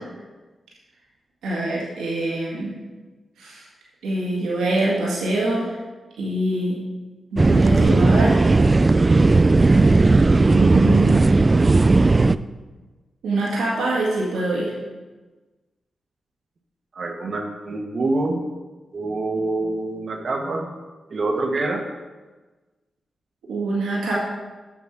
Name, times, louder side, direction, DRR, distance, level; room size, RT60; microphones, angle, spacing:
voice 1, 1.4-2.8 3.4-3.7 4.0-5.8 6.2-6.8 7.3-8.4 10.4-11.3 13.2-14.7 23.5-24.1, right 2 dB, 90° right, -5 dB, 2.0 m, -24 dB
sound 1, 7.4-12.4, right 3 dB, 35° right, 0.3 m, -16 dB
voice 2, 16.9-18.4 18.9-20.7 21.1-21.8, right 2 dB, 60° right, 3 dB, 1.4 m, -26 dB
7.5 x 6.1 x 6.0 m, 1.2 s
supercardioid pair, 40°, 0 cm